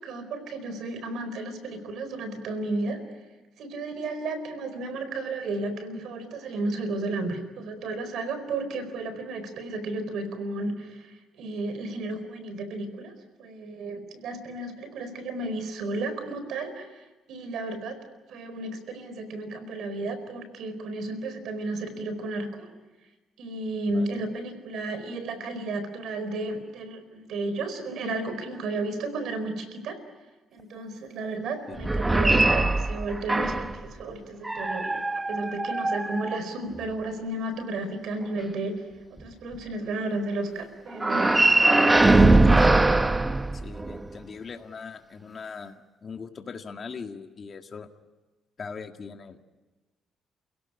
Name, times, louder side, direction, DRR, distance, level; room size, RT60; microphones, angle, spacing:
voice 1, 0.0-3.0 3.6-13.1 13.4-18.0 18.3-22.7 23.4-30.0 30.5-38.8 39.1-42.7, right 2 dB, 75° right, 10 dB, 4.5 m, -33 dB
voice 2, 23.9-24.2 31.7-31.8 43.5-45.7 46.0-47.9 48.6-49.4, left 5 dB, 45° left, 5 dB, 1.9 m, -40 dB
sound 1, 31.8-33.8 34.4-36.9 41.0-44.1, right 2 dB, 15° right, 0.9 m, -21 dB
29.0 x 17.0 x 9.9 m, 1.2 s
cardioid pair, 90°, 0 cm